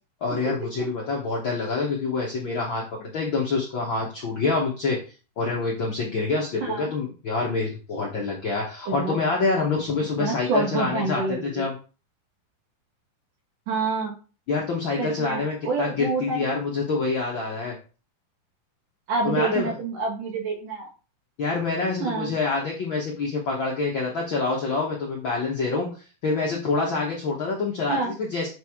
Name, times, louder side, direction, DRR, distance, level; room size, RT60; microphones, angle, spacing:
voice 1, 0.2-5.0 5.4-11.8 14.5-17.7 19.2-19.8 21.4-28.5, left 3 dB, 60° left, -2 dB, 1.3 m, -26 dB
voice 2, 8.9-9.2 10.2-11.5 13.7-14.1 15.0-16.4 19.1-20.9 21.8-22.3 27.9-28.1, right 4 dB, 70° right, 0 dB, 3.3 m, -27 dB
7.5 x 4.7 x 3.6 m, 0.35 s
omnidirectional pair, 3.9 m